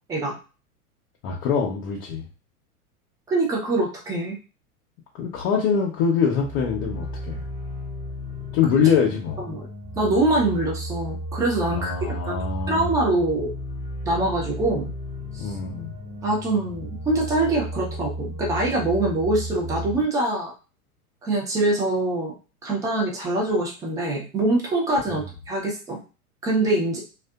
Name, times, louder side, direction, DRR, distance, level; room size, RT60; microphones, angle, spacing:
voice 1, 1.2-2.3 5.2-7.4 8.5-9.4 11.7-12.9 15.4-15.9 25.1-25.2, left 6 dB, 40° left, -2 dB, 0.6 m, -24 dB
voice 2, 3.3-4.4 9.5-9.7 10.0-11.9 12.2-12.4 12.7-13.5 14.1-14.9 15.3-15.5 16.2-20.5 21.2-22.3 22.6-26.0 26.4-27.0, right 2 dB, 10° right, -2 dB, 0.3 m, -24 dB
sound 1, 6.4-20.0, equal, 35° right, 1.0 m, -34 dB
2.4 x 2.2 x 2.3 m, 0.34 s
figure-of-eight pair, 95°, 43 cm